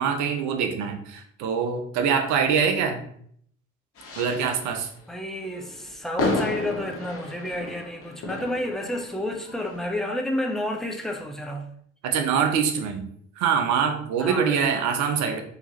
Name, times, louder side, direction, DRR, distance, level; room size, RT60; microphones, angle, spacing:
voice 1, 0.0-3.0 4.2-4.9 12.0-13.1 13.4-15.4, right 7 dB, 60° right, 0.7 m, -24 dB
sound 1, 4.0-4.8 5.4-10.0, left 2 dB, 40° left, 0.9 m, -32 dB
voice 2, 5.1-11.7 14.2-14.7, left 1 dB, ahead, 0.6 m, -30 dB
3.7 x 2.9 x 2.9 m
figure-of-eight pair, 45°, 33 cm